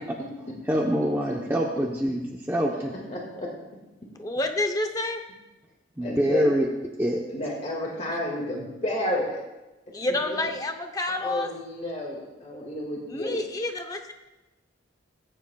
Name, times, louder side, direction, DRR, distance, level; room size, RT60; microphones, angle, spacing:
voice 1, 0.6-2.9 6.0-6.7 7.0-7.2, equal, 10° right, -2 dB, 0.9 m, -25 dB
voice 2, 3.1-3.5 6.0-6.4 7.3-9.4 10.3-10.4 11.2-13.5, left 1 dB, 35° left, -2 dB, 2.0 m, -31 dB
voice 3, 4.2-5.2 9.9-11.5 13.1-14.1, left 2 dB, 20° left, 5 dB, 0.8 m, -29 dB
20.0 x 10.0 x 2.3 m, 1.1 s
head